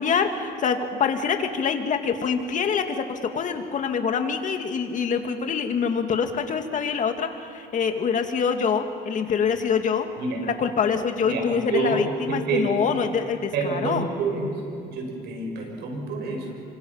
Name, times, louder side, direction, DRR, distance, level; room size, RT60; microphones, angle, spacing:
voice 1, 0.0-10.1 10.6-14.1, left 6 dB, 50° left, 6 dB, 2.3 m, -25 dB
voice 2, 10.2-10.5 11.2-12.9 13.5-16.5, right 3 dB, 80° right, 1 dB, 6.7 m, -28 dB
27.5 x 25.0 x 5.8 m, 2.7 s
cardioid pair, 110°, 17 cm